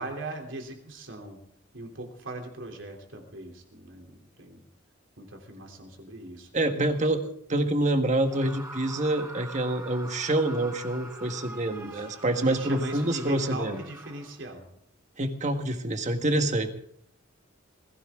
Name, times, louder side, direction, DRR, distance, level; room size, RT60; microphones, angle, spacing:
voice 1, 0.0-1.4 1.7-4.7 5.2-6.5 11.7-12.0 12.4-14.7, right 2 dB, 75° right, 2 dB, 3.2 m, -39 dB
voice 2, 6.5-13.8 15.2-16.7, right 1 dB, 40° right, 6 dB, 1.5 m, -27 dB
Screaming, 8.2-14.5, right 2 dB, 15° right, 5.6 m, -44 dB
20.5 x 16.0 x 3.7 m, 0.68 s
head